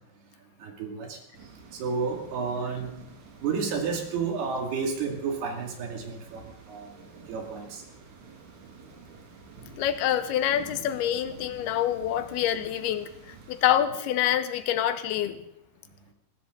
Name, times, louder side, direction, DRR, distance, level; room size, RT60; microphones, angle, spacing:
voice 1, 0.6-1.2 1.7-3.0 3.4-6.9 7.3-7.8, right 5 dB, 75° right, 2 dB, 4.2 m, -31 dB
sound 1, 1.3-13.8, right 4 dB, 50° right, 3.4 m, -49 dB
voice 2, 9.8-13.1 13.5-15.4, left 11 dB, 80° left, 10 dB, 2.8 m, -26 dB
20.5 x 16.0 x 3.8 m, 0.84 s
omnidirectional pair, 4.6 m